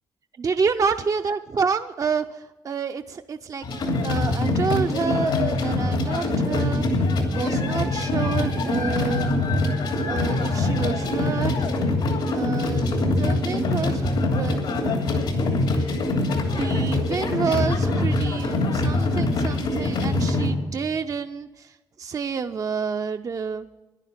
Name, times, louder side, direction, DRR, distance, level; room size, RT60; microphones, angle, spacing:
voice 1, 0.4-3.6 4.0-6.9 7.3-9.3 10.1-11.5 12.3-14.9 16.3-23.7, right 5 dB, 45° right, 7 dB, 0.5 m, -28 dB
sound 1, 3.6-20.5, left 2 dB, 85° left, 2.8 m, -23 dB
11.0 x 9.9 x 8.6 m, 1.1 s
cardioid pair, 85°, 8 cm